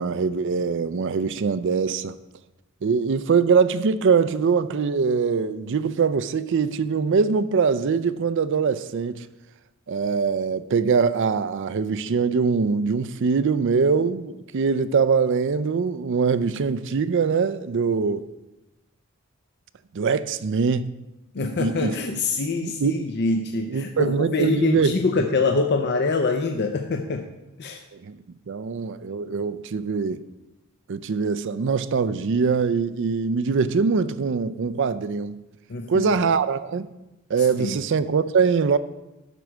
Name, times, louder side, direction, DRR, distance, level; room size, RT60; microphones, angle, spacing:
voice 1, 0.0-2.2 2.8-9.3 9.9-18.2 19.9-21.0 21.6-21.9 22.6-23.0 23.7-24.9 27.9-28.2 28.5-30.2 30.9-35.4 35.9-36.9 37.3-38.8, right 5 dB, 55° right, 0.4 m, -23 dB
voice 2, 21.3-27.3 27.6-27.8 35.7-36.1 37.6-37.8, left 3 dB, 50° left, 0.6 m, -25 dB
12.0 x 4.6 x 6.3 m
head